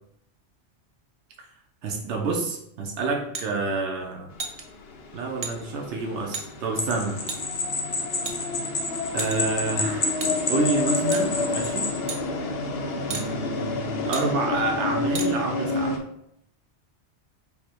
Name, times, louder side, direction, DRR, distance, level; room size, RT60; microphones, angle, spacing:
voice 1, 1.8-4.3 5.1-7.2 7.9-8.0 9.1-10.2 10.5-11.9 13.1-16.0, right 3 dB, 85° right, 2 dB, 1.0 m, -28 dB
sound 1, 3.3-3.5 4.4-4.6 5.4-5.5 6.3-6.5 7.3-7.4 8.2-8.7 9.2-9.6 10.2-10.3 11.1-11.3 12.1-12.2 13.1-13.3 14.1-14.3 15.1-15.3, right 4 dB, 45° right, 0.5 m, -32 dB
sound 2, 4.3-16.0, left 3 dB, 65° left, 0.8 m, -30 dB
sound 3, 6.8-12.0, left 3 dB, 35° left, 0.5 m, -30 dB
5.3 x 2.1 x 4.4 m, 0.74 s
omnidirectional pair, 1.2 m